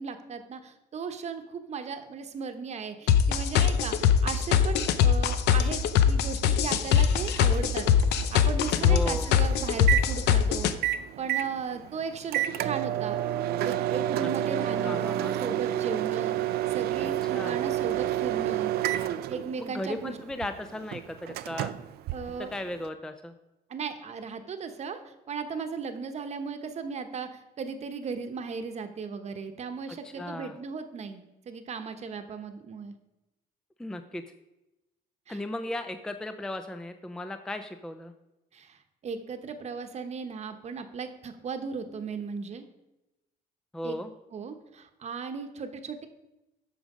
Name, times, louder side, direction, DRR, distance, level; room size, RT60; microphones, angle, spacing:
voice 1, 0.0-7.9 8.3-10.7 11.2-13.2 13.6-16.4 16.7-18.7 19.3-20.2 22.1-22.5 23.7-32.9 35.3-35.4 38.5-38.8 39.0-42.6 43.8-44.0 44.3-46.1, right 5 dB, 40° right, 8 dB, 1.0 m, -36 dB
sound 1, 3.1-10.7, left 8 dB, 80° left, 0.6 m, -22 dB
Microwave oven, 7.2-22.9, right 13 dB, 70° right, 0.4 m, -30 dB
voice 2, 8.8-9.3 14.2-14.3 14.8-15.3 17.0-17.6 19.6-21.7 22.4-23.3 29.9-30.5 33.8-34.2 35.3-38.1 43.7-44.1, left 1 dB, 5° left, 9 dB, 0.4 m, -36 dB
9.0 x 6.3 x 4.9 m, 0.96 s
cardioid pair, 110°, 17 cm